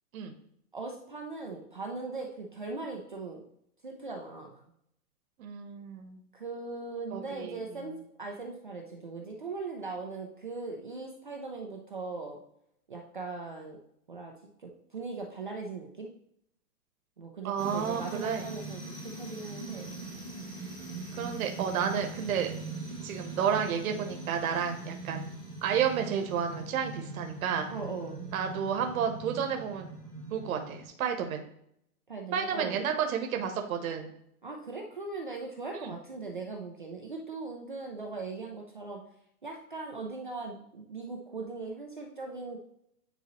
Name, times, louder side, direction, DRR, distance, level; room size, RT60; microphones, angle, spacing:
voice 1, 0.7-3.4 3.8-4.6 6.3-12.4 12.9-13.8 14.1-14.3 14.6-16.1 17.2-20.1 27.7-28.2 32.1-32.8 34.4-39.0 39.4-42.6, right 3 dB, 35° right, 1 dB, 0.4 m, -39 dB
voice 2, 5.4-6.2 7.1-7.6 17.4-18.4 21.1-22.5 23.0-25.2 25.6-27.7 28.3-29.9 30.3-31.5 32.3-34.1 35.7-35.9, right 7 dB, 60° right, 4 dB, 1.1 m, -31 dB
sound 1, 17.6-30.9, right 3 dB, 10° left, 1.2 m, -41 dB
9.3 x 3.9 x 3.0 m, 0.71 s
supercardioid pair, 175°, 47 cm